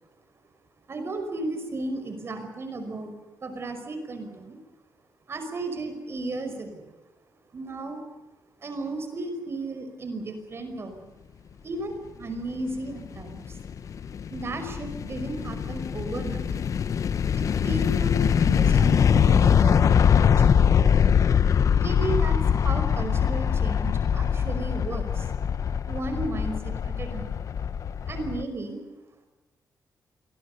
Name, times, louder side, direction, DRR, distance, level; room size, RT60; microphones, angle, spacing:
voice 1, 0.9-3.1 3.4-4.6 5.3-6.9 7.5-8.0 8.6-11.0 11.6-11.9 12.2-13.6 14.3-16.6 17.4-20.5 21.8-25.3 25.9-27.4 28.1-28.8, right 2 dB, 40° right, 7 dB, 5.3 m, -34 dB
sound 1, 12.9-28.4, left 7 dB, 55° left, 1.1 m, -23 dB
27.0 x 22.0 x 6.7 m, 1.1 s
cardioid pair, 130°, 7 cm